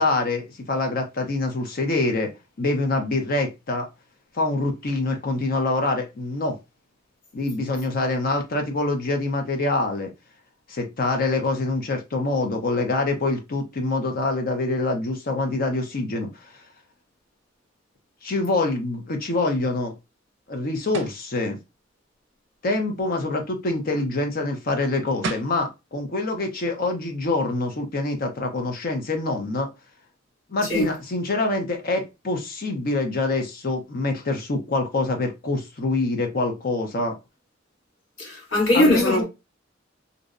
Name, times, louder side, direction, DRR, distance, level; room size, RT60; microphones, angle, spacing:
voice 1, 0.0-2.3 2.6-3.9 4.3-6.6 7.3-10.1 10.7-16.3 18.2-19.9 20.5-21.6 22.6-29.7 30.5-37.2 38.7-39.2, left 2 dB, 50° left, 0.6 m, -25 dB
sound 1, 20.9-21.2 24.9-25.0 25.2-25.6, right 3 dB, 65° right, 0.5 m, -31 dB
voice 2, 38.2-39.2, left 1 dB, 90° left, 1.2 m, -20 dB
2.6 x 2.0 x 2.4 m
head